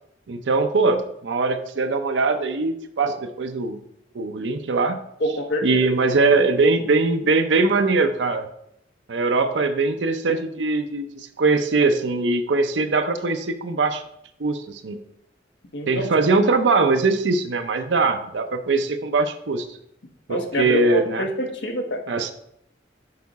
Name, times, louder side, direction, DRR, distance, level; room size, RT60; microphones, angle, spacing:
voice 1, 0.3-3.8 4.1-5.0 5.6-8.4 9.1-14.0 14.4-15.0 15.9-19.7 20.3-21.3 22.1-22.3, right 3 dB, 90° right, 7 dB, 0.6 m, -21 dB
voice 2, 5.2-5.8 15.7-16.1 20.3-22.0, equal, 85° left, 4 dB, 1.1 m, -26 dB
6.7 x 4.7 x 4.1 m, 0.75 s
head